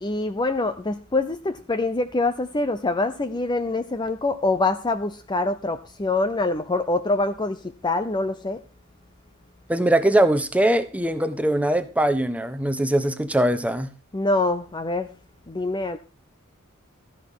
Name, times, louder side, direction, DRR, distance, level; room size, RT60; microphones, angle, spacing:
voice 1, 0.0-8.6 14.1-15.1 15.5-16.0, left 2 dB, 20° left, 0.7 m, -25 dB
voice 2, 9.7-13.9, right 1 dB, 5° right, 1.1 m, -21 dB
13.5 x 10.5 x 3.7 m
head